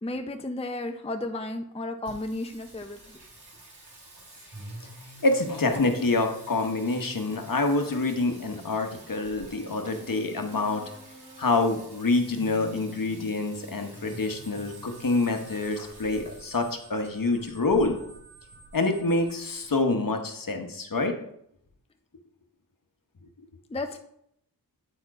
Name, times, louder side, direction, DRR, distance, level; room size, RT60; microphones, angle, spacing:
voice 1, 0.0-3.2 23.7-24.0, left 2 dB, 15° left, 6 dB, 0.6 m, -33 dB
Singing, 2.1-19.7, right 1 dB, 85° right, 2.5 m, -48 dB
voice 2, 5.2-10.8 11.4-18.0 18.7-21.1, left 3 dB, 60° left, 5 dB, 1.1 m, -26 dB
sound 1, 14.1-19.3, right 3 dB, 30° right, 2.1 m, -52 dB
8.9 x 4.3 x 4.8 m, 0.73 s
wide cardioid pair, 85°, 38 cm